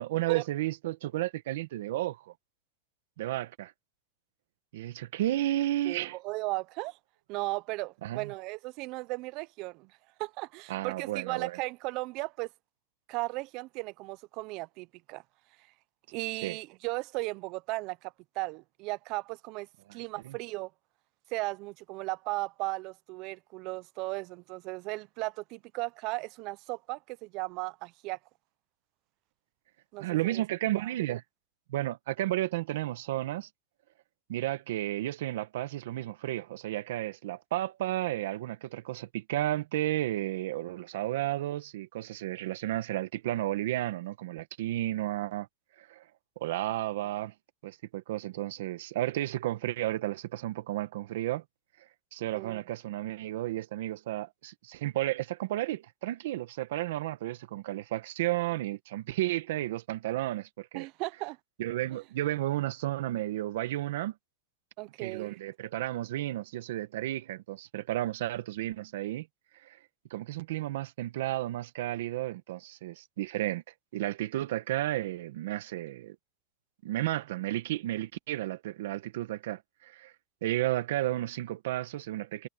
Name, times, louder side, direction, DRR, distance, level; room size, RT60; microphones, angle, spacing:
voice 1, 0.0-2.3 3.2-3.7 4.7-6.2 8.0-8.3 10.7-11.6 16.4-16.6 20.2-20.4 30.0-31.2 31.7-33.5 34.3-45.5 45.8-46.0 46.4-47.3 47.6-51.4 52.1-60.9 61.6-64.1 65.0-69.3 69.6-69.8 70.1-73.6 73.9-76.1 76.8-80.1 80.4-82.5, right 15 dB, 70° right, 1.6 m, -32 dB
voice 2, 5.9-7.0 7.3-9.9 10.2-12.5 13.1-15.2 16.1-20.7 21.3-28.2 29.9-30.4 30.8-30.9 52.3-52.6 60.7-61.4 61.9-62.0 64.8-65.4, right 23 dB, 40° right, 0.4 m, -36 dB
supercardioid pair, 160°, 0 cm